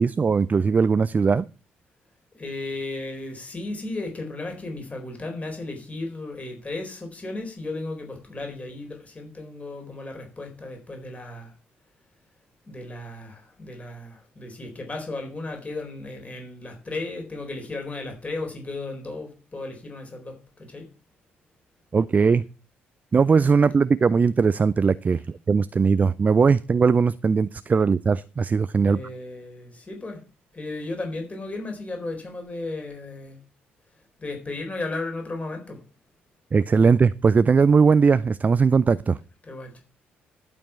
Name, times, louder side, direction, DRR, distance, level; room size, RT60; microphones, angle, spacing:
voice 1, 0.0-1.5 21.9-22.4 23.1-29.0 36.5-39.2, right 5 dB, 30° right, 0.4 m, -19 dB
voice 2, 2.3-11.6 12.7-20.9 28.8-30.2 30.5-33.4 34.2-35.8 39.4-39.8, left 2 dB, 25° left, 4.1 m, -35 dB
12.0 x 5.2 x 7.3 m
figure-of-eight pair, 45°, 5 cm